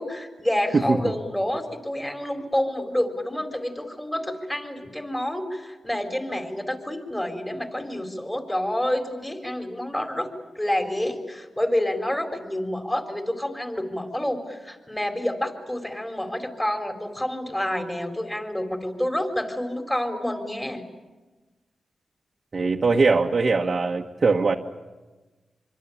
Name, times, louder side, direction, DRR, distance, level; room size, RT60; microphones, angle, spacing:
voice 1, 0.0-10.3 10.6-20.8, left 1 dB, 10° left, 6 dB, 4.2 m, -28 dB
voice 2, 22.5-24.5, right 4 dB, 50° right, 0 dB, 1.5 m, -21 dB
25.5 x 25.0 x 8.7 m, 1.2 s
cardioid pair, 70°, 0 cm